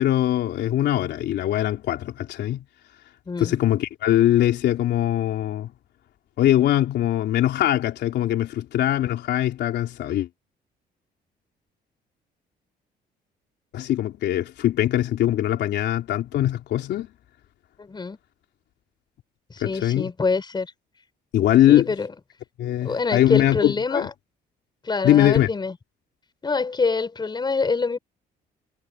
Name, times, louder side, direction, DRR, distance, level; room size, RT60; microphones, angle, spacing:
voice 1, 0.0-2.6 3.4-5.7 6.4-10.3 13.7-17.1 19.6-20.1 21.3-21.9 22.6-24.1 25.0-25.5, left 12 dB, 75° left, 3.5 m, -21 dB
voice 2, 3.3-3.6 17.8-18.2 19.5-20.7 21.7-22.1 22.8-24.1 24.8-25.8 26.4-28.0, left 4 dB, 25° left, 5.8 m, -25 dB
cardioid pair, 125°, 18 cm